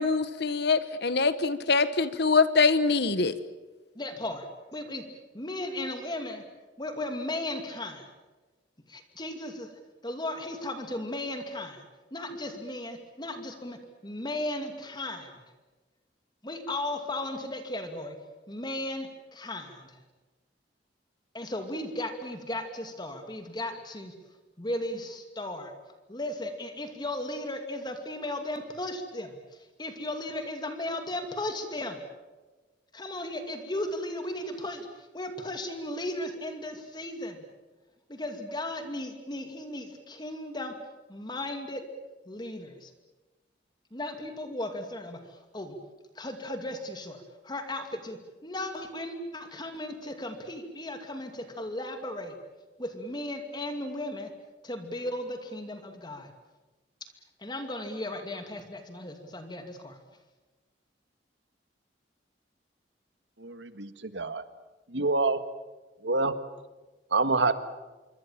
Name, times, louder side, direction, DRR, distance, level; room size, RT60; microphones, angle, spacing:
voice 1, 0.0-3.3, left 4 dB, 65° left, 13 dB, 1.2 m, -24 dB
voice 2, 4.0-5.0 5.3-6.4 6.8-8.1 8.9-9.7 10.0-11.8 12.1-15.3 16.4-18.2 18.5-20.0 21.3-24.1 24.6-25.7 26.1-29.4 29.8-32.0 32.9-34.9 35.1-37.4 38.1-40.7 41.1-41.8 42.3-42.9 43.9-45.2 45.5-45.7 46.2-52.4 52.8-54.3 54.6-56.3 57.4-60.0, left 1 dB, 25° left, 6 dB, 2.5 m, -36 dB
voice 3, 63.4-64.4 64.9-65.4 66.0-66.3 67.1-67.5, right 3 dB, 80° right, 11 dB, 1.8 m, -26 dB
26.0 x 24.5 x 7.4 m, 1.2 s
head